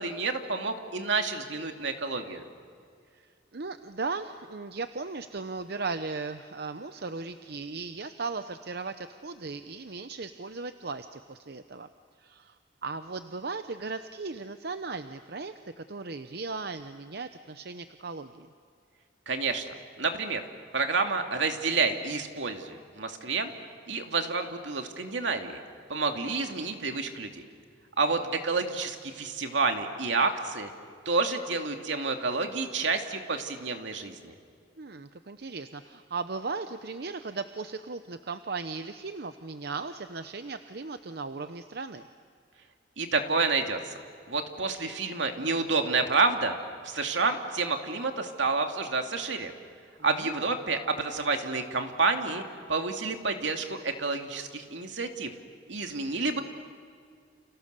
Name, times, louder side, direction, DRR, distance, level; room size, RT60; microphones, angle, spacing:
voice 1, 0.0-2.4 19.3-20.4 20.7-23.5 23.9-25.6 25.9-27.4 28.0-30.7 31.1-34.3 43.0-43.9 44.3-46.6 46.8-49.5 50.0-52.4 52.7-55.3 55.7-56.4, right 4 dB, 80° right, 5 dB, 2.4 m, -29 dB
voice 2, 3.1-11.9 12.2-12.6 12.8-18.5 28.2-28.3 34.8-42.0 50.1-50.5, right 4 dB, 60° right, 9 dB, 0.8 m, -37 dB
30.0 x 29.5 x 6.8 m, 2.3 s
head